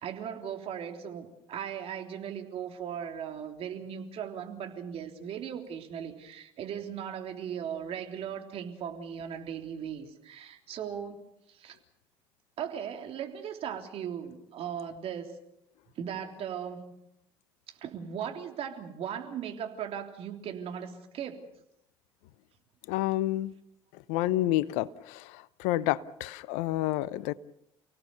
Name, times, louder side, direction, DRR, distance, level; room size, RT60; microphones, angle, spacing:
voice 1, 0.0-11.2 11.5-11.8 12.6-15.4 16.0-16.9 17.7-21.4, right 8 dB, 55° right, 4 dB, 3.4 m, -38 dB
voice 2, 22.9-23.5 24.1-25.2 25.6-27.3, left 15 dB, 70° left, 18 dB, 0.9 m, -29 dB
30.0 x 17.5 x 6.9 m, 0.82 s
hypercardioid pair, 60°, 12 cm